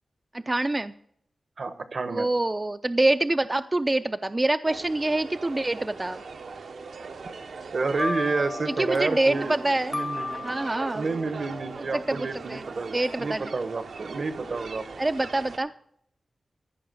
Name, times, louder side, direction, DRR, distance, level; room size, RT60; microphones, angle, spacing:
voice 1, 0.3-0.9 2.1-6.2 8.7-9.9 10.4-11.0 11.9-12.6 12.9-13.4 15.0-15.7, right 2 dB, 25° right, 10 dB, 0.3 m, -25 dB
voice 2, 1.6-2.3 7.7-9.5 9.9-10.5 10.9-14.8, right 4 dB, 65° right, 11 dB, 0.9 m, -30 dB
sound 1, 4.6-15.6, right 4 dB, 85° right, 0.9 m, -40 dB
sound 2, 8.0-11.2, left 3 dB, 45° left, 0.8 m, -35 dB
14.5 x 5.4 x 6.7 m, 0.70 s
wide cardioid pair, 75°, 0 cm